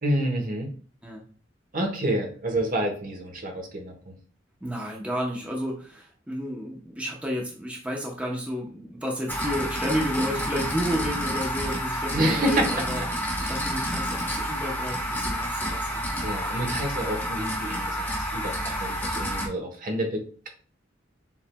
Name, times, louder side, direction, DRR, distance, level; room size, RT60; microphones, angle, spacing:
voice 1, 0.0-0.7 1.7-4.1 12.1-12.7 16.2-20.5, right 1 dB, 45° right, 2 dB, 1.0 m, -28 dB
voice 2, 4.6-13.0 13.4-16.3, equal, 5° right, -2 dB, 0.8 m, -31 dB
sound 1, 9.3-19.5, equal, 10° left, 1.1 m, -29 dB
7.1 x 3.2 x 2.2 m, 0.42 s
head